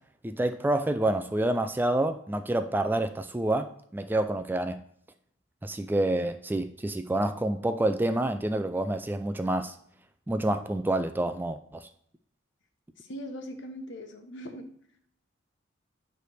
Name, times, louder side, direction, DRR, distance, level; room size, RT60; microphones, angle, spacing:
voice 1, 0.2-4.8 5.6-9.8 10.3-11.9, right 1 dB, 10° right, 0.3 m, -28 dB
voice 2, 13.0-14.7, equal, 60° left, 1.1 m, -40 dB
9.3 x 3.4 x 6.3 m
head